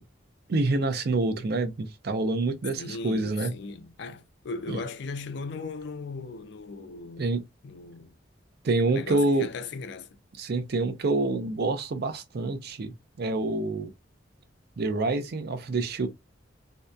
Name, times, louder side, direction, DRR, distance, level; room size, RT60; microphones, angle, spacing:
voice 1, 0.5-3.5 4.7-4.8 7.2-7.4 8.6-9.5 10.4-13.9 14.8-16.1, right 2 dB, 60° right, 0.5 m, -27 dB
voice 2, 2.8-7.3 7.6-8.1 8.9-10.2, left 4 dB, 65° left, 0.4 m, -38 dB
2.7 x 2.1 x 2.3 m
head